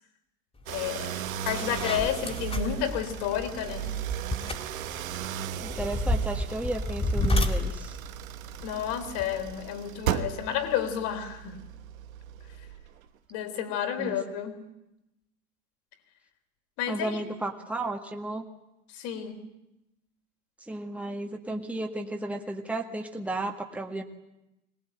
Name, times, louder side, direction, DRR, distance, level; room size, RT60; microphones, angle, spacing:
voice 1, 0.7-4.0 8.6-11.6 13.3-14.6 16.8-17.2 18.9-19.5, left 9 dB, 55° left, 7 dB, 3.7 m, -31 dB
sound 1, 0.7-0.9 1.3-9.5, left 1 dB, 15° left, 2.8 m, -31 dB
sound 2, 0.7-13.0, right 11 dB, 75° right, 1.3 m, -36 dB
voice 2, 5.6-8.0 14.0-14.2 16.9-18.5 20.7-24.0, right 2 dB, 5° right, 3 dB, 1.8 m, -33 dB
22.5 x 19.0 x 9.0 m, 0.90 s
hypercardioid pair, 90°, 41 cm